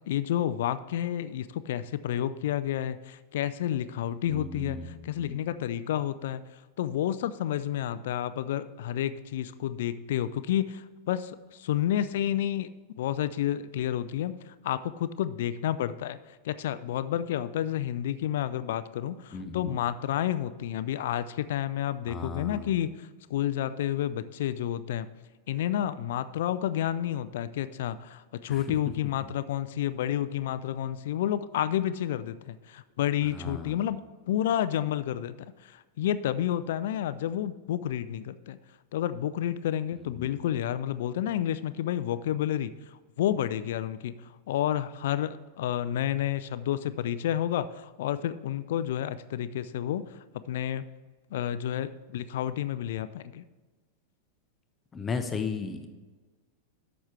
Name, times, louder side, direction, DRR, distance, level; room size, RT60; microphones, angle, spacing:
voice 1, 0.1-6.4 6.8-12.7 13.0-16.2 16.4-25.1 25.5-34.0 34.3-35.3 35.6-38.6 38.9-42.7 43.2-50.1 50.5-50.8 51.3-53.4, left 11 dB, 55° left, 15 dB, 0.4 m, -30 dB
voice 2, 4.3-4.8 5.2-5.4 19.3-19.8 22.1-22.7 28.5-28.6 33.3-33.8 40.1-40.3 54.9-55.9, left 4 dB, 20° left, 7 dB, 0.8 m, -35 dB
11.5 x 7.2 x 3.3 m, 1.3 s
figure-of-eight pair, 90°, 0 cm